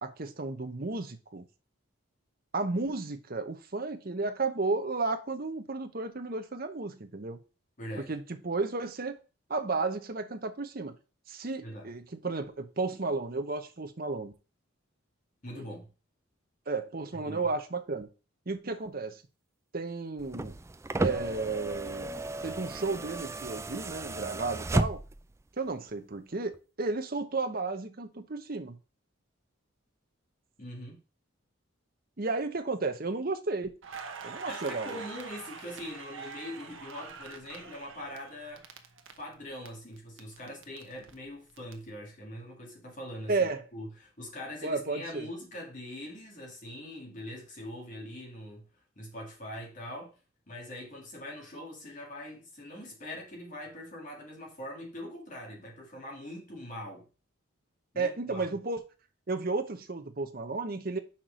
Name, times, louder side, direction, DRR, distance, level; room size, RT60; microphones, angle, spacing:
voice 1, 0.0-1.5 2.5-7.4 8.1-9.2 9.5-11.0 11.3-14.3 15.5-15.6 16.7-18.1 18.5-19.2 19.7-20.6 21.0-22.1 22.4-25.0 25.6-28.8 32.2-33.7 34.2-35.0 43.3-43.7 44.6-45.3 58.0-58.8 59.3-61.0, right 3 dB, 45° right, 0.9 m, -33 dB
voice 2, 7.8-8.1 11.6-11.9 15.4-15.9 17.1-17.5 30.6-31.0 34.5-38.7 39.2-48.7 49.0-50.2 50.5-57.1 57.9-58.5, left 1 dB, 40° left, 2.1 m, -42 dB
sound 1, 20.2-25.3 26.5-26.6, right 2 dB, 15° right, 0.3 m, -33 dB
Crackle, 33.8-39.7 40.0-41.7, right 5 dB, 70° right, 1.0 m, -45 dB
5.9 x 4.6 x 5.1 m
head